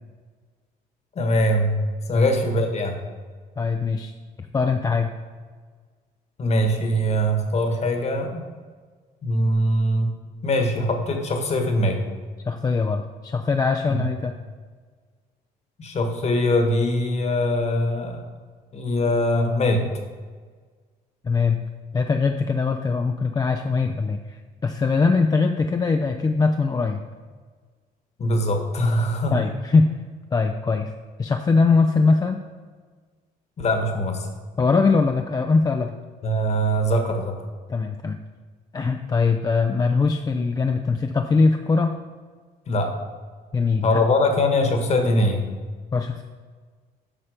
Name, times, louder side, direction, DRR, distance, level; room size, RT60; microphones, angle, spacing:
voice 1, 1.1-3.0 6.4-8.4 9.2-10.1 10.4-12.0 13.9-14.0 15.8-18.2 18.7-19.8 28.2-29.4 33.6-34.3 36.2-37.4 42.7-43.0 43.8-45.4, left 1 dB, 40° left, 5 dB, 1.4 m, -22 dB
voice 2, 3.6-4.1 4.5-5.1 12.5-14.4 21.2-21.6 21.9-27.0 29.3-29.9 30.3-30.9 31.2-32.4 34.6-35.9 37.7-38.2 38.7-41.9 43.5-44.0 45.9-46.2, left 4 dB, 20° left, 5 dB, 0.4 m, -21 dB
8.9 x 5.6 x 5.0 m, 1.5 s
cardioid pair, 110°, 17 cm